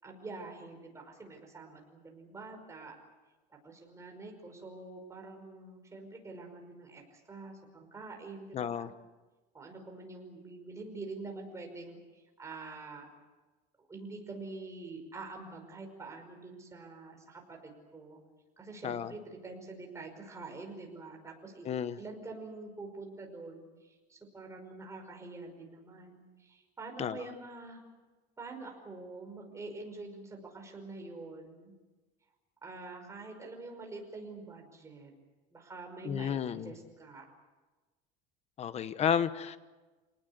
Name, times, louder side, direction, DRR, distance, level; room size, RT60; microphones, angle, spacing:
voice 1, 0.0-3.0 3.6-8.9 9.5-13.1 13.9-18.2 18.6-21.7 22.0-27.8 28.4-31.7 32.6-35.1 35.5-37.3, right 3 dB, 15° right, 2 dB, 5.5 m, -46 dB
voice 2, 8.5-8.9 18.8-19.1 21.6-22.0 27.0-27.2 36.0-36.7 38.6-39.6, left 8 dB, 35° left, 13 dB, 1.1 m, -32 dB
27.0 x 19.5 x 8.1 m, 1.2 s
cardioid pair, 145°, 19 cm